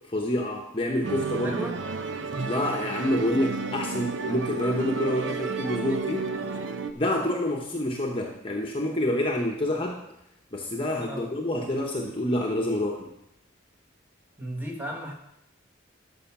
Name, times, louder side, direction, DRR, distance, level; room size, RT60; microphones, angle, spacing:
voice 1, 0.1-1.7 2.5-6.3 6.9-10.0 10.5-13.1, left 1 dB, 25° left, 0 dB, 1.0 m, -27 dB
Musical instrument, 1.0-6.9, right 4 dB, 70° right, 0.7 m, -32 dB
voice 2, 1.4-1.8 11.0-11.3 14.4-15.1, right 1 dB, 10° right, 0 dB, 1.5 m, -34 dB
13.0 x 5.7 x 5.9 m, 0.83 s
head